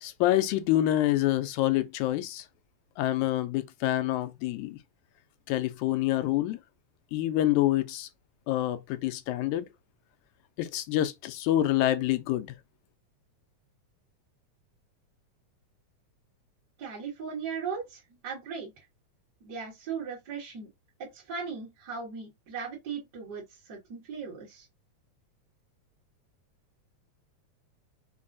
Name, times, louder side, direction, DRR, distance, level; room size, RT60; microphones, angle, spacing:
voice 1, 0.0-2.5 3.0-4.8 5.5-6.6 7.1-8.1 8.5-9.7 10.6-12.6, left 14 dB, 90° left, 2.0 m, -27 dB
voice 2, 16.8-18.8 19.4-20.7 21.0-24.7, right 6 dB, 45° right, 1.6 m, -38 dB
5.2 x 2.3 x 2.5 m
omnidirectional pair, 3.3 m